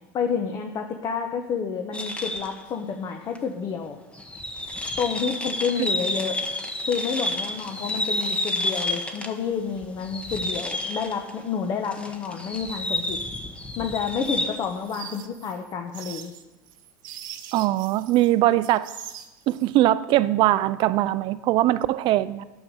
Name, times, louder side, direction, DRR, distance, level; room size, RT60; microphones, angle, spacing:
voice 1, 0.1-4.0 5.0-6.4 6.8-13.2 13.8-16.3, left 6 dB, 40° left, 4 dB, 1.1 m, -29 dB
sound 1, 1.9-2.6 3.4-3.5 4.1-9.4 9.8-11.4 11.8-14.7, left 1 dB, 10° left, 1.3 m, -30 dB
sound 2, 14.2-18.3 18.6-19.6, right 10 dB, 80° right, 1.1 m, -42 dB
voice 2, 17.5-18.9 19.5-22.4, right 15 dB, 50° right, 16 dB, 0.5 m, -21 dB
9.6 x 7.3 x 6.5 m, 1.1 s
supercardioid pair, 105°, 11 cm